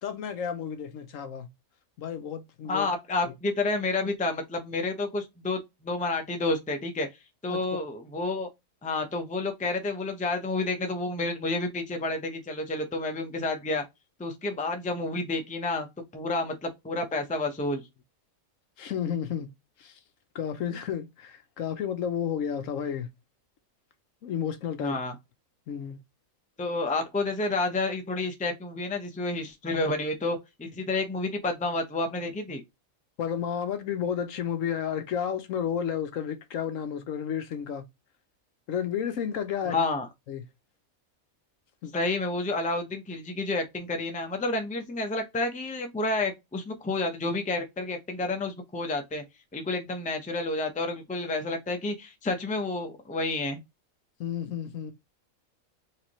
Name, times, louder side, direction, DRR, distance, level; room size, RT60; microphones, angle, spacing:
voice 1, 0.0-1.5 2.0-2.9 3.3-3.4 7.5-7.6 18.8-19.5 19.8-20.0 20.3-23.1 24.2-25.0 25.7-26.0 33.2-37.8 38.7-39.8 40.3-40.4 41.8-41.9 54.2-54.9, left 8 dB, 70° left, 1.1 m, -32 dB
voice 2, 2.7-7.1 7.4-8.5 8.8-13.8 14.2-15.9 16.1-17.8 24.8-25.1 26.6-32.6 39.6-40.1 41.9-49.2 49.5-53.6, left 2 dB, 10° left, 0.5 m, -30 dB
4.7 x 3.2 x 3.0 m
omnidirectional pair, 1.5 m